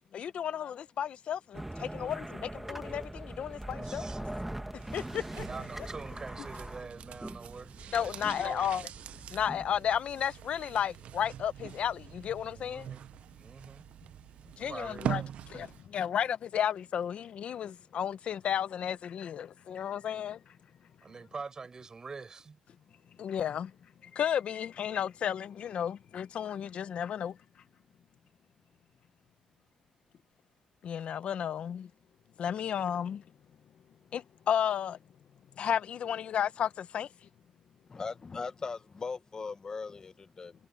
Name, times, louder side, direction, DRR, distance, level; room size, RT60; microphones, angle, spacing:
voice 1, 0.1-4.0 4.7-5.4 7.9-8.9 9.3-12.9 14.6-15.2 15.5-20.4 23.2-23.7 24.1-27.4 30.8-31.9 32.4-33.2 34.1-35.0 35.6-37.1, left 9 dB, 65° left, 0.8 m, -33 dB
sound 1, 1.5-10.0, right 1 dB, 10° right, 1.5 m, -42 dB
voice 2, 1.8-2.3 3.6-4.2 5.5-8.6 12.5-13.1 13.4-13.9 14.4-15.3 21.0-22.6, right 4 dB, 35° right, 5.6 m, -45 dB
sound 2, 4.7-15.9 16.2-16.3, right 10 dB, 75° right, 0.6 m, -43 dB
voice 3, 37.9-40.5, left 4 dB, 35° left, 0.8 m, -39 dB
cardioid pair, 110°, 2 cm